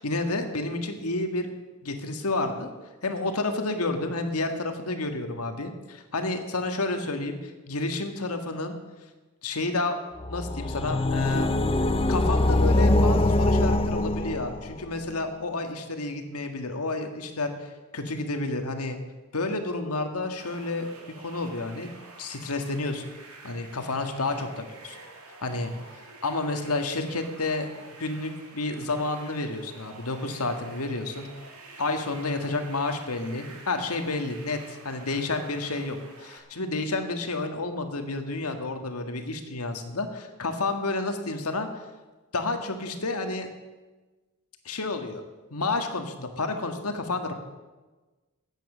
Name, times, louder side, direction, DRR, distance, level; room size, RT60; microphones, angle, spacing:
voice 1, 0.0-1.5 1.8-2.7 3.0-8.8 9.4-10.0 10.3-11.5 12.1-19.0 19.3-20.9 21.2-21.9 22.2-23.1 23.4-25.0 25.4-25.7 26.2-27.7 28.0-31.3 31.8-41.7 42.3-43.5 44.6-45.2 45.5-47.3, left 2 dB, 80° left, 6 dB, 1.7 m, -30 dB
sound 1, 10.2-14.9, left 1 dB, 25° left, 0.6 m, -23 dB
sound 2, 20.4-36.4, right 3 dB, 80° right, 2.5 m, -48 dB
14.0 x 9.1 x 7.3 m, 1.2 s
head